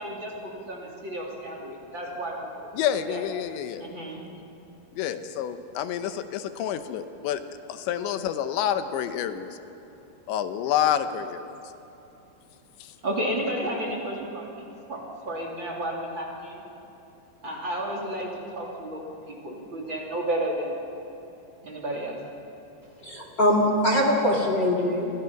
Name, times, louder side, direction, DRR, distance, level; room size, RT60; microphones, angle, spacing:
voice 1, 0.0-2.5 3.1-3.2 3.8-4.2 13.0-14.5 14.9-16.6 17.4-20.8 21.6-22.2, right 1 dB, 30° right, -1 dB, 2.7 m, -32 dB
voice 2, 2.7-3.9 4.9-7.4 7.7-9.5 10.3-11.5 12.8-12.9, left 10 dB, 75° left, 9 dB, 3.0 m, -28 dB
voice 3, 23.0-25.1, left 1 dB, 30° left, 0 dB, 2.3 m, -22 dB
29.5 x 25.5 x 5.9 m, 2.9 s
omnidirectional pair, 5.7 m